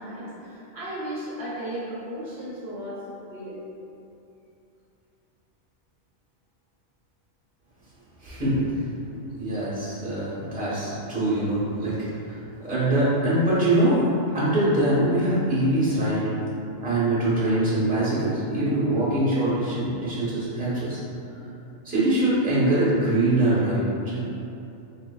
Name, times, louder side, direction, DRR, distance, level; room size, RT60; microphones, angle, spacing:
voice 1, 0.0-3.6 10.2-10.4 10.7-10.9 12.0-12.1 12.5-12.6 19.9-20.0, equal, 65° right, -8 dB, 0.9 m, -36 dB
voice 2, 8.2-8.7 9.4-11.9 12.2-14.0 14.3-16.2 16.8-21.0 21.8-24.2, right 1 dB, 10° right, -11 dB, 1.0 m, -23 dB
3.6 x 3.4 x 2.2 m, 2.8 s
omnidirectional pair, 1.2 m